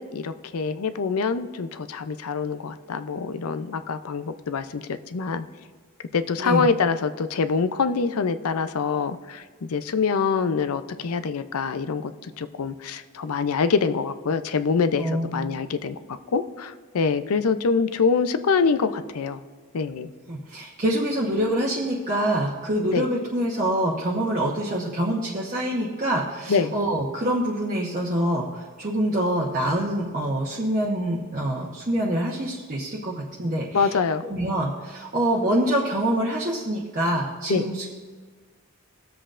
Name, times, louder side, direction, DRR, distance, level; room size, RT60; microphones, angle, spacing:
voice 1, 0.0-5.5 6.1-16.0 16.3-19.4 19.7-20.1 22.9-23.1 26.5-26.7 33.7-34.2 37.5-37.6, left 5 dB, 80° left, 11 dB, 0.5 m, -25 dB
voice 2, 14.9-15.4 20.3-33.9 34.2-37.9, right 1 dB, 35° right, -5 dB, 1.0 m, -25 dB
18.0 x 7.6 x 2.5 m, 1.4 s
head